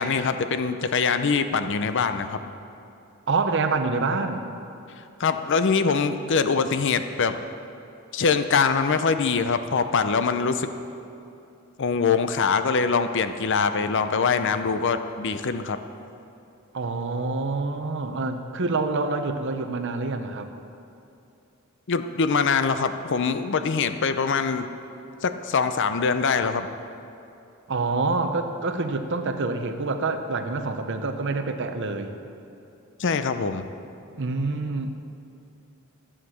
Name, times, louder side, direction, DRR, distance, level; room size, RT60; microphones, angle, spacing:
voice 1, 0.0-2.4 5.2-7.4 8.1-10.7 11.8-15.8 21.9-24.7 25.2-26.7 33.0-33.7, left 5 dB, 60° left, 10 dB, 0.6 m, -23 dB
voice 2, 3.3-4.4 16.7-20.5 27.7-32.2 34.2-34.9, right 3 dB, 60° right, 7 dB, 0.8 m, -26 dB
13.5 x 7.5 x 6.4 m, 2.7 s
head